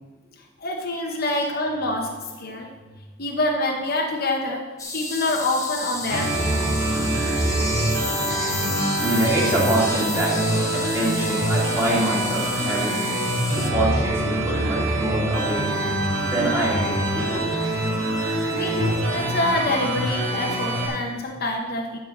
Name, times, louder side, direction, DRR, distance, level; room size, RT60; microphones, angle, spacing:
voice 1, 0.6-2.1 2.4-2.7 3.2-4.7 4.9-6.9 18.5-22.0, left 2 dB, 50° left, 1 dB, 1.0 m, -26 dB
sound 1, 4.8-13.7, left 3 dB, 15° left, 1.1 m, -32 dB
sound 2, 6.1-20.9, right 1 dB, 85° right, 3.0 m, -25 dB
voice 2, 9.0-13.0 13.5-15.7 16.2-17.4, right 1 dB, 15° right, -5 dB, 2.5 m, -25 dB
11.5 x 4.7 x 6.5 m, 1.3 s
head